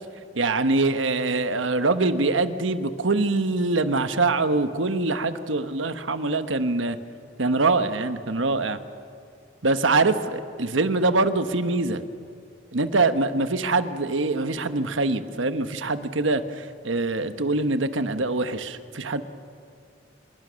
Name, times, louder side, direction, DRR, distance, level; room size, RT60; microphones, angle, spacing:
voice 1, 0.3-7.0 7.4-8.8 9.6-12.0 12.7-19.2, right 3 dB, 90° right, 10 dB, 1.2 m, -24 dB
27.5 x 21.5 x 6.4 m, 2.3 s
head